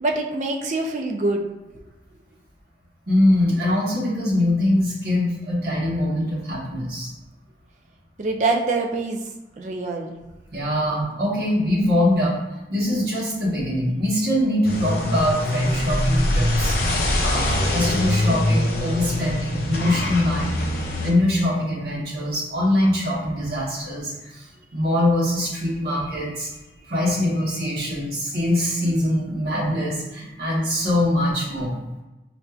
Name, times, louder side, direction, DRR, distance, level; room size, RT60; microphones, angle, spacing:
voice 1, 0.0-1.4 8.2-9.2 9.6-10.2 17.8-17.9, right 2 dB, 40° right, 2 dB, 0.4 m, -24 dB
voice 2, 3.1-7.1 10.5-12.4 12.7-16.8 17.2-20.6 21.0-24.5 24.7-26.5 26.9-31.8, left 1 dB, 60° right, -6 dB, 1.1 m, -23 dB
sound 1, 14.6-21.1, left 1 dB, 55° left, 0.5 m, -23 dB
4.3 x 2.5 x 2.3 m, 1.1 s
head